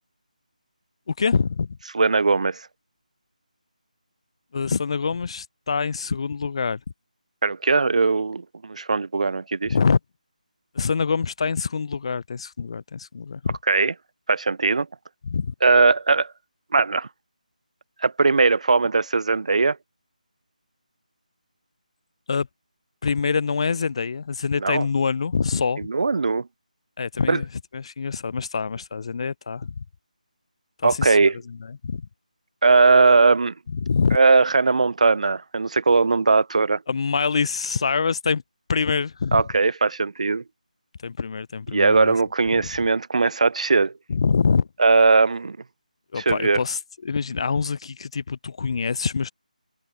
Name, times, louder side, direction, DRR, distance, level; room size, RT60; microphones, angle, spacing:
voice 1, 1.1-1.8 4.5-6.8 9.7-10.0 10.7-13.6 15.3-15.5 22.3-22.5 23.0-25.9 27.0-27.5 27.7-29.8 30.8-31.2 31.8-32.0 33.7-34.2 36.9-38.4 38.7-39.4 41.0-42.1 44.1-44.7 46.1-49.3, left 5 dB, 40° left, 0.7 m, -25 dB
voice 2, 1.9-2.7 7.4-9.7 13.7-13.9 14.3-14.9 15.6-16.3 16.7-17.1 18.0-19.8 24.6-24.9 25.8-26.5 27.3-27.4 30.8-31.3 32.6-33.5 34.1-36.8 39.3-40.4 41.7-43.9 44.8-45.6 46.2-46.6, right 4 dB, 55° right, 0.6 m, -19 dB
figure-of-eight pair, 155°, 4 cm